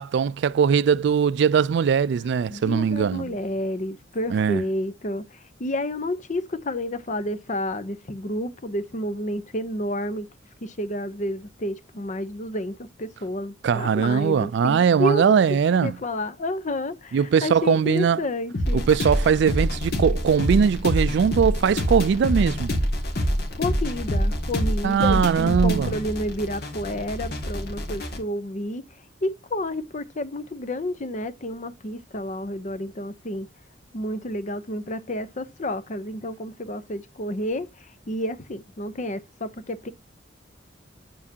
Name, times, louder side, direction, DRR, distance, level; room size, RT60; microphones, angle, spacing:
voice 1, 0.0-3.3 4.3-4.6 13.6-16.0 17.1-18.2 18.7-22.7 24.8-25.9, right 7 dB, 65° right, 0.3 m, -20 dB
voice 2, 2.5-5.2 5.6-10.3 10.6-15.4 15.8-18.8 23.6-28.8 29.2-33.5 33.9-37.7 38.1-39.9, left 1 dB, 40° left, 0.7 m, -30 dB
sound 1, 18.5-28.2, equal, 55° left, 2.0 m, -26 dB
8.2 x 7.4 x 2.8 m
head